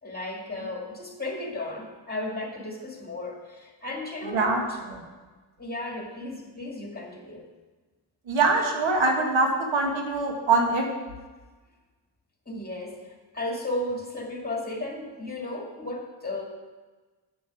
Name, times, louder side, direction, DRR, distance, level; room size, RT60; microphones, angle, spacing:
voice 1, 0.0-4.8 5.6-7.4 12.5-13.0 13.3-16.4, left 2 dB, 20° left, 1 dB, 2.6 m, -34 dB
voice 2, 4.3-4.6 4.9-5.0 8.3-10.9, right 3 dB, 70° right, 2 dB, 1.9 m, -23 dB
8.3 x 7.7 x 6.4 m, 1.3 s
supercardioid pair, 55°, 48 cm